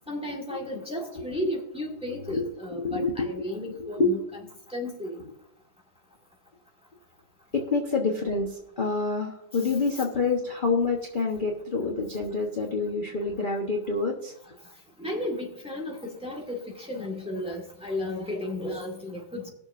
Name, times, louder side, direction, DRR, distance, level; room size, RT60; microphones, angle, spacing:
voice 1, 0.1-4.2 4.7-5.2 9.6-9.7 15.0-19.5, left 1 dB, 5° right, -1 dB, 1.6 m, -34 dB
voice 2, 1.1-1.5 2.3-3.5 3.8-4.1 5.2-5.3 7.5-14.3, left 4 dB, 30° left, -1 dB, 1.0 m, -27 dB
21.0 x 7.0 x 2.6 m, 0.80 s
omnidirectional pair, 2.1 m